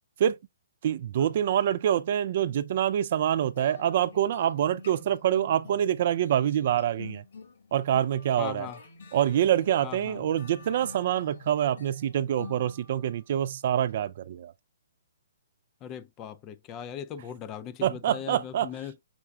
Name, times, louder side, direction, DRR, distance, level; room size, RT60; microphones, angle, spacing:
voice 1, 0.8-7.2 7.7-8.7 9.1-14.5 17.8-18.7, right 10 dB, 50° right, 0.3 m, -26 dB
sound 1, 3.6-13.2, left 5 dB, 65° left, 1.6 m, -47 dB
voice 2, 8.4-8.8 9.8-10.2 15.8-19.0, left 9 dB, 20° left, 0.4 m, -39 dB
5.8 x 3.4 x 2.3 m
hypercardioid pair, 155°, 0 cm